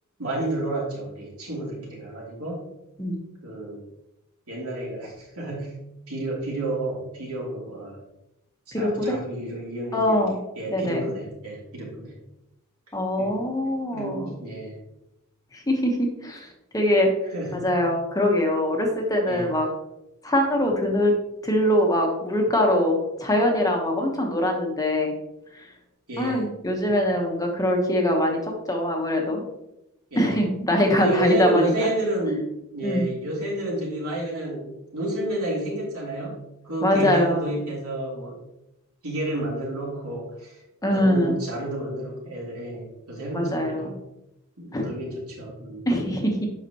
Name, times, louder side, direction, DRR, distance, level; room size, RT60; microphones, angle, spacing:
voice 1, 0.2-2.6 3.4-3.8 4.5-5.7 6.1-8.0 8.7-10.2 10.6-12.1 13.2-13.3 13.9-14.8 17.3-17.7 19.3-19.5 26.1-26.4 30.1-30.4 31.0-36.4 36.6-38.4 39.0-40.6 40.9-43.9 44.6-45.9, right 1 dB, 75° right, -4 dB, 2.9 m, -30 dB
voice 2, 8.7-9.2 9.9-10.4 10.7-11.0 12.9-14.3 15.5-16.0 16.2-17.1 17.5-19.7 20.2-21.1 21.4-25.1 25.5-25.7 26.2-28.4 28.7-29.4 30.1-31.9 32.8-33.1 36.8-37.4 40.8-41.4 43.3-43.9 44.7-44.9 45.9-46.5, left 1 dB, 15° left, 1 dB, 1.1 m, -23 dB
8.2 x 5.8 x 3.0 m, 0.88 s
head